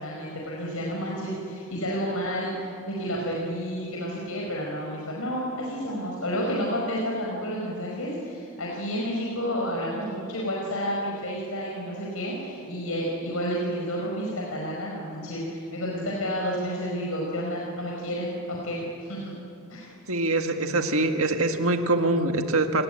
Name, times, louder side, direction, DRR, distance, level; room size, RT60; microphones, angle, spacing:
voice 1, 0.0-2.5 2.9-19.3 19.7-19.9, equal, 80° left, -2 dB, 4.9 m, -30 dB
voice 2, 20.1-22.8, right 2 dB, 75° right, 5 dB, 1.9 m, -24 dB
28.0 x 20.0 x 9.1 m, 2.6 s
head